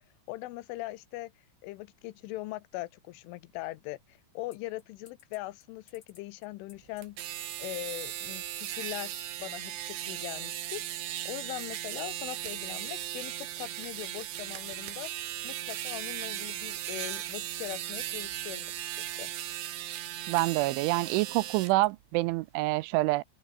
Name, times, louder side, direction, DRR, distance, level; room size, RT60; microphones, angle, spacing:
voice 1, 0.3-1.3 1.6-7.2 7.6-15.1 15.4-19.3, left 18 dB, 85° left, 3.3 m, -41 dB
sound 1, 4.5-21.9, left 6 dB, 40° left, 3.5 m, -57 dB
sound 2, 7.0-21.7, right 13 dB, 65° right, 3.5 m, -37 dB
voice 2, 20.3-23.2, right 20 dB, 80° right, 2.9 m, -27 dB
open air
omnidirectional pair, 5.7 m